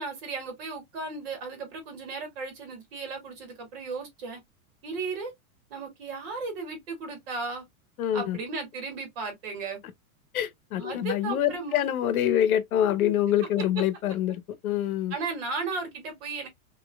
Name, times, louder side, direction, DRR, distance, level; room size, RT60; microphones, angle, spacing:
voice 1, 0.0-4.4 4.8-5.3 5.7-7.6 8.1-9.8 10.8-11.8 13.6-13.8 14.3-14.4 15.1-16.5, right 4 dB, 45° right, 2.4 m, -35 dB
voice 2, 8.0-8.4 10.3-14.4 14.6-15.1, left 11 dB, 85° left, 1.0 m, -25 dB
5.1 x 3.0 x 2.3 m
supercardioid pair, 175°, 42 cm